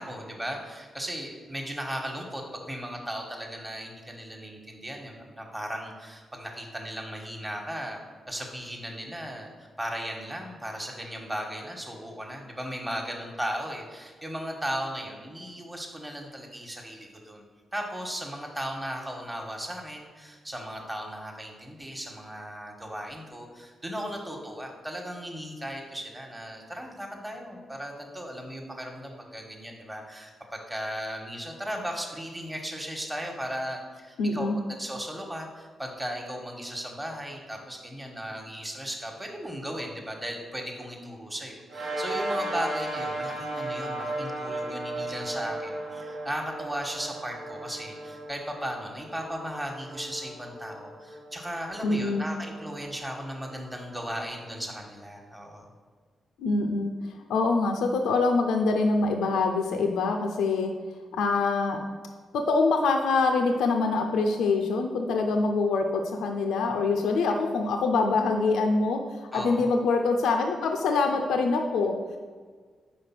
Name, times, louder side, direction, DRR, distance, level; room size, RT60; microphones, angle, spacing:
voice 1, 0.0-8.0 8.3-17.4 17.7-34.5 34.8-55.7 69.3-69.7, equal, 15° right, 1 dB, 1.2 m, -36 dB
voice 2, 34.2-34.6 51.8-52.3 56.4-60.7 61.1-61.8 62.3-72.0, left 3 dB, 80° left, 4 dB, 0.5 m, -25 dB
sound 1, 41.7-54.4, right 1 dB, 85° right, 1.3 m, -36 dB
5.1 x 4.0 x 5.8 m, 1.6 s
supercardioid pair, 50°, 0 cm